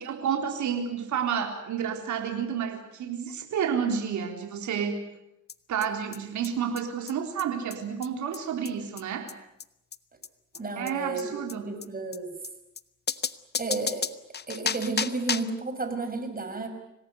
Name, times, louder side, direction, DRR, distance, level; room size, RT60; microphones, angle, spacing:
voice 1, 0.0-5.0 5.7-9.3 10.8-11.6, right 7 dB, 75° right, 4 dB, 3.9 m, -30 dB
sound 1, 5.5-5.6 5.8-5.9 6.1-6.2 6.4-6.5 6.8-6.9 7.1-7.2 7.4-7.5 7.7-7.8 8.0-8.1 8.3-8.4 8.7-8.8 9.0-9.1 9.3-9.4 9.6-9.7 9.9-10.0 10.2-10.3 10.5-10.6 10.9-11.0 11.2-11.3 11.5-11.6 11.8-11.9 12.1-12.2 12.4-12.5 12.8-12.9 13.1-15.6, left 6 dB, 35° left, 1.0 m, -32 dB
voice 2, 10.6-12.3 13.6-14.1 14.5-16.7, right 3 dB, 30° right, 7 dB, 6.1 m, -32 dB
26.0 x 18.5 x 9.3 m, 0.86 s
cardioid pair, 90°, 30 cm